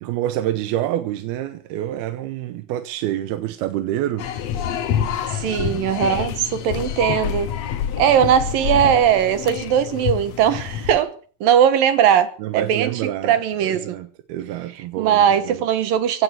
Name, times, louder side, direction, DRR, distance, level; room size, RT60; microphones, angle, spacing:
voice 1, 0.0-4.3 5.5-5.8 12.4-15.6, right 13 dB, 85° right, 2.9 m, -27 dB
sound 1, 4.2-11.0, left 9 dB, 65° left, 1.8 m, -27 dB
voice 2, 5.3-7.5 8.0-11.1 11.4-14.0 15.0-16.2, right 9 dB, 70° right, 2.8 m, -19 dB
16.5 x 9.6 x 8.0 m
omnidirectional pair, 4.4 m